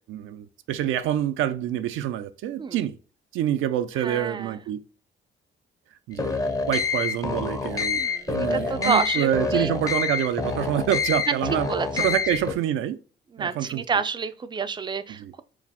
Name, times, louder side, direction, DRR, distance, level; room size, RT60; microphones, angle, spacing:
voice 1, 0.0-3.0 3.3-4.8 6.1-6.4 6.7-8.0 8.3-11.7 12.0-13.0 13.4-13.8 15.2-15.3, right 11 dB, 85° right, 0.5 m, -26 dB
voice 2, 3.9-4.6 8.0-9.7 11.3-12.1 13.3-15.4, right 5 dB, 25° right, 0.4 m, -29 dB
sound 1, 6.1-12.5, left 5 dB, 15° left, 0.6 m, -27 dB
4.8 x 2.0 x 3.4 m
cardioid pair, 90°, 20 cm